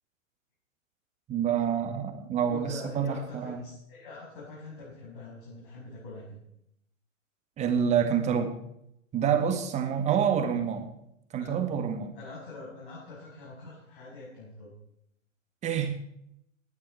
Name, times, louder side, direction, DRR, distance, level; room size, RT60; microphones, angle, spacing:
voice 1, 1.3-3.6 7.6-8.5 9.1-10.9 11.3-12.2 15.6-16.0, right 8 dB, 15° right, 7 dB, 1.8 m, -27 dB
voice 2, 2.5-6.4 11.3-11.5 12.1-14.7, left 2 dB, 40° left, -6 dB, 7.0 m, -44 dB
18.5 x 10.5 x 4.6 m, 0.75 s
figure-of-eight pair, 115°, 40 cm